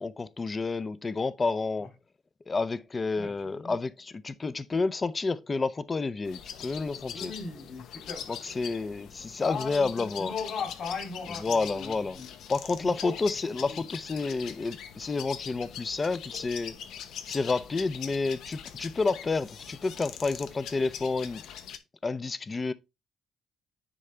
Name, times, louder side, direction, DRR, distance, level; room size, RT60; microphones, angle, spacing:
voice 1, 0.0-1.9 2.5-7.3 8.3-10.3 11.4-12.2 12.5-16.7 17.3-21.4 22.0-22.7, left 3 dB, 25° left, 0.5 m, -30 dB
voice 2, 3.2-3.7 7.1-8.4 9.4-12.3 12.8-13.2 13.7-13.8, left 5 dB, 55° left, 3.7 m, -38 dB
sound 1, 6.2-21.8, left 9 dB, 80° left, 0.9 m, -43 dB
10.0 x 4.4 x 3.8 m
cardioid pair, 130°, 0 cm